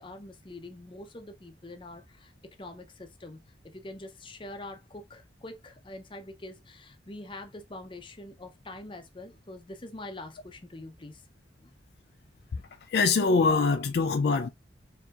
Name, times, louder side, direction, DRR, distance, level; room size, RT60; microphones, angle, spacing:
voice 1, 0.0-11.3 11.6-11.7, left 2 dB, 30° left, 0.7 m, -44 dB
voice 2, 12.9-14.5, left 4 dB, 60° left, 0.3 m, -24 dB
4.5 x 2.8 x 2.4 m
head